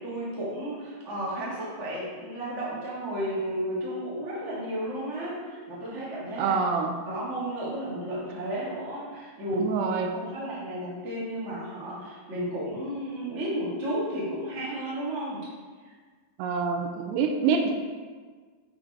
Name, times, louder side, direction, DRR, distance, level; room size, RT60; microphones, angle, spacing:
voice 1, 0.0-6.6 7.0-15.4 15.8-15.9, equal, 35° right, -8 dB, 1.1 m, -33 dB
voice 2, 6.4-6.9 9.5-10.1 16.4-17.7, right 5 dB, 85° right, 3 dB, 2.6 m, -26 dB
7.2 x 5.1 x 4.8 m, 1.5 s
omnidirectional pair, 4.8 m